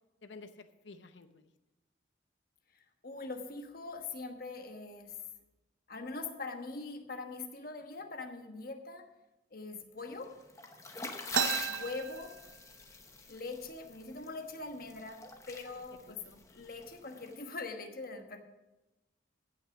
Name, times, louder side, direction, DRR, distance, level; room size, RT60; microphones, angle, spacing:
voice 1, 0.2-1.5 11.0-11.1 16.0-16.4, left 3 dB, 70° left, 10 dB, 0.8 m, -53 dB
voice 2, 2.7-5.2 5.9-9.0 9.5-10.3 11.7-12.3 13.3-16.2 16.5-18.4, left 3 dB, 50° left, 5 dB, 1.2 m, -42 dB
sound 1, 10.2-17.3, left 3 dB, 15° left, 0.8 m, -44 dB
sound 2, 11.3-12.9 13.3-13.4 13.6-14.2 14.8-15.0 15.7-15.9 16.3-16.8, right 8 dB, 90° right, 0.6 m, -35 dB
15.0 x 5.9 x 6.0 m, 1.0 s
head